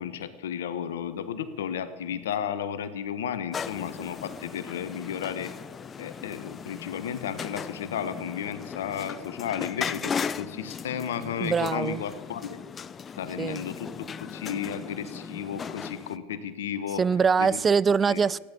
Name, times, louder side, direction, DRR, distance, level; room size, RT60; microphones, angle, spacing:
voice 1, 0.0-5.5 6.0-12.6 13.2-17.0 17.4-17.6 18.1-18.2, left 8 dB, 80° left, 1.3 m, -33 dB
sound 1, 3.5-16.2, left 6 dB, 30° left, 0.6 m, -37 dB
voice 2, 11.4-12.0 13.4-13.6 17.0-18.4, right 5 dB, 25° right, 0.4 m, -23 dB
15.5 x 10.5 x 8.7 m
hypercardioid pair, 95°, 0 cm